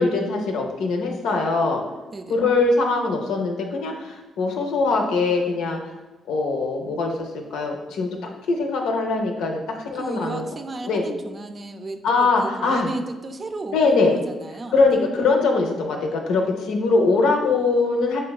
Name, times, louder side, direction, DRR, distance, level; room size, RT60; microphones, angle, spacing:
voice 1, 0.0-1.8 2.3-5.9 6.3-8.1 8.5-10.5 10.9-11.0 12.0-12.9 13.7-14.1 14.7-18.2, left 3 dB, 90° left, 2 dB, 0.6 m, -22 dB
voice 2, 2.1-2.4 9.9-15.0, right 2 dB, 35° right, 6 dB, 0.4 m, -34 dB
6.4 x 2.2 x 2.3 m, 1.1 s
cardioid pair, 75°, 0 cm